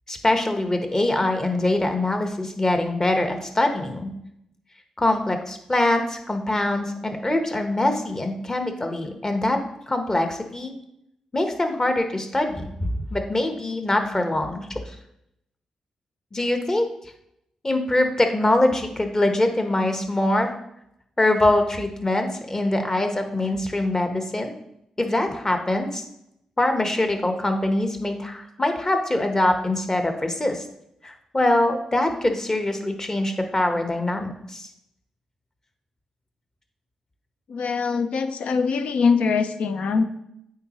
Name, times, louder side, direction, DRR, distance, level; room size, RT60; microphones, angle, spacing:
voice 1, 0.1-4.1 5.0-9.6 9.9-10.7 11.3-12.6 13.1-14.7 16.3-16.9 17.6-20.5 21.2-24.5 25.0-26.0 26.6-30.6 31.0-34.7, left 1 dB, 25° left, 5 dB, 1.1 m, -23 dB
voice 2, 37.5-40.0, left 5 dB, 70° left, 9 dB, 0.5 m, -22 dB
8.7 x 3.8 x 3.0 m, 0.79 s
supercardioid pair, 40°, 2 cm